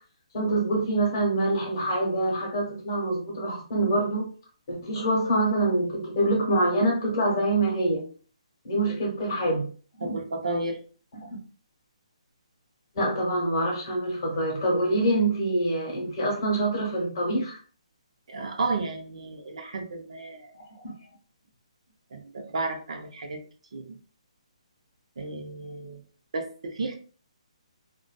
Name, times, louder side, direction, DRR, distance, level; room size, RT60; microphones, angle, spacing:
voice 1, 0.3-4.3 4.7-8.0 8.6-9.6 10.0-10.2 11.2-11.4 12.9-17.6 20.5-21.1, right 1 dB, 35° left, -2 dB, 1.0 m, -25 dB
voice 2, 10.0-10.8 18.3-20.5 22.1-23.4 23.7-24.0 25.2-26.0 26.3-26.9, right 3 dB, 65° right, 4 dB, 0.6 m, -32 dB
2.5 x 2.3 x 2.2 m, 0.40 s
hypercardioid pair, 175°, 4 cm